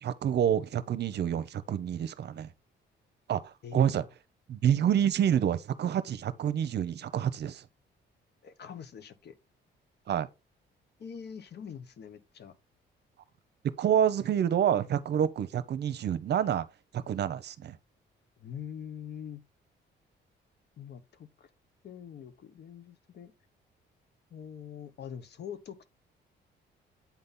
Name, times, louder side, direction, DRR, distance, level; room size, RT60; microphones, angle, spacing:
voice 1, 0.0-2.5 3.3-4.0 4.5-7.6 10.1-10.3 13.8-16.6 16.9-17.8, right 9 dB, 60° right, 0.7 m, -28 dB
voice 2, 3.6-4.1 8.4-9.3 11.0-12.6 18.4-19.4 20.8-21.5 21.8-23.3 24.3-25.9, left 8 dB, 55° left, 1.0 m, -44 dB
8.5 x 4.1 x 3.7 m
cardioid pair, 90°, 20 cm